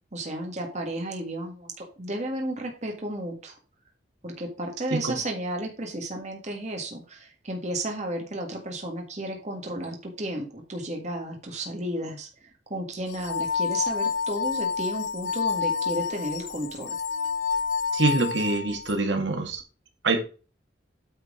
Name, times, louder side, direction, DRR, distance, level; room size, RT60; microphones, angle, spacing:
voice 1, 0.1-3.6 4.2-17.0, right 1 dB, 40° right, 2 dB, 1.7 m, -33 dB
sound 1, 13.1-19.0, left 6 dB, 75° left, 0.5 m, -29 dB
voice 2, 17.9-19.6 20.0-20.2, right 3 dB, 70° right, 4 dB, 1.9 m, -25 dB
9.1 x 4.7 x 5.0 m, 0.35 s
head